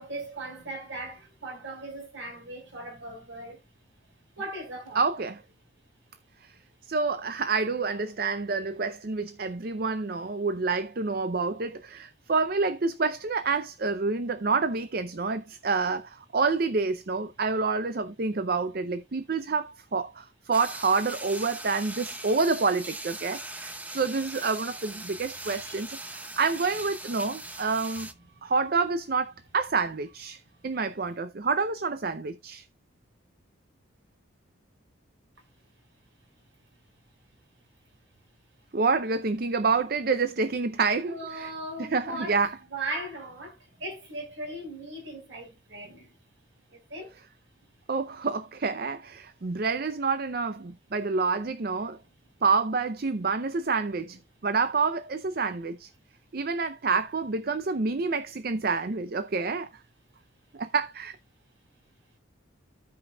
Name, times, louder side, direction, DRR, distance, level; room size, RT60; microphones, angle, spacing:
voice 1, 0.0-3.6 4.4-5.0 25.5-25.8 41.1-42.4 42.7-46.1 46.7-47.1, right 2 dB, 65° right, 5.3 m, -38 dB
voice 2, 4.9-5.4 6.4-6.5 6.9-28.1 28.4-32.6 38.7-41.5 41.8-42.6 47.9-52.0 52.4-54.2 54.4-55.9 56.3-59.7 60.5-61.2, right 4 dB, 50° right, 0.5 m, -28 dB
sound 1, 20.5-28.1, right 2 dB, 10° right, 0.6 m, -40 dB
15.5 x 5.3 x 2.3 m
head